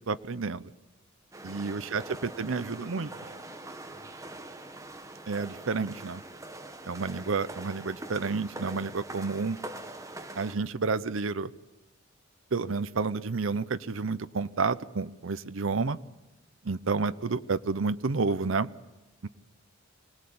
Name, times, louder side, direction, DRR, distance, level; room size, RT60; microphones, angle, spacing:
voice 1, 0.1-0.7 1.4-3.1 5.3-6.2 6.8-9.6 10.4-11.5 12.5-16.0 16.6-18.7 19.2-19.3, right 4 dB, 75° right, 13 dB, 0.7 m, -30 dB
sound 1, 1.3-10.6, right 2 dB, 15° right, 1.2 m, -43 dB
voice 2, 1.5-3.4 3.9-4.4, right 1 dB, 35° right, 0 dB, 5.6 m, -54 dB
25.0 x 18.5 x 8.6 m, 1.0 s
head